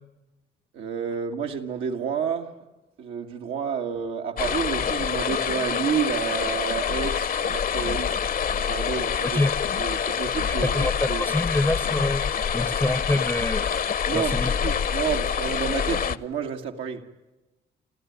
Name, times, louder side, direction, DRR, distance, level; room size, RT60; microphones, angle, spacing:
voice 1, 0.7-2.6 3.0-8.2 8.5-9.4 9.7-11.3 14.1-17.1, right 7 dB, 90° right, 2.0 m, -30 dB
sound 1, 4.4-16.2, left 7 dB, 45° left, 0.8 m, -26 dB
voice 2, 10.6-13.6 14.1-14.6, left 2 dB, 10° left, 0.7 m, -26 dB
27.5 x 14.0 x 9.4 m
cardioid pair, 90°, 20 cm